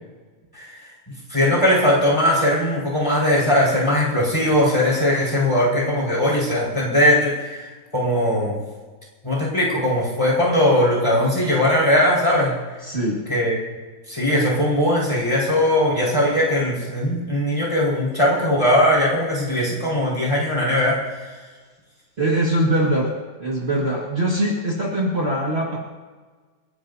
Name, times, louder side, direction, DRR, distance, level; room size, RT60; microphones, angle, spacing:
voice 1, 1.3-8.6 9.2-12.5 13.3-13.6 14.1-21.3, left 1 dB, 15° left, -5 dB, 5.3 m, -19 dB
voice 2, 12.8-13.2 22.2-23.1 23.4-25.8, right 1 dB, 35° right, -3 dB, 2.2 m, -22 dB
29.0 x 12.0 x 2.8 m, 1.4 s
omnidirectional pair, 2.0 m